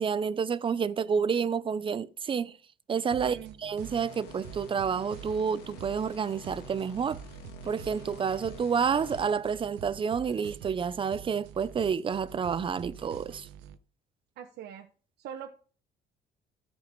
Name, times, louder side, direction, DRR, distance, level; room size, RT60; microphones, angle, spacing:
voice 1, 0.0-2.6 2.9-3.4 3.6-7.2 7.6-13.5, right 6 dB, 30° right, 0.6 m, -29 dB
sound 1, 3.1-13.8, right 10 dB, 90° right, 0.7 m, -47 dB
voice 2, 3.2-3.6 14.4-14.9 15.2-15.6, right 9 dB, 75° right, 1.1 m, -41 dB
sound 2, 3.8-9.6, left 4 dB, 90° left, 1.7 m, -49 dB
13.5 x 5.3 x 5.2 m
cardioid pair, 110°, 17 cm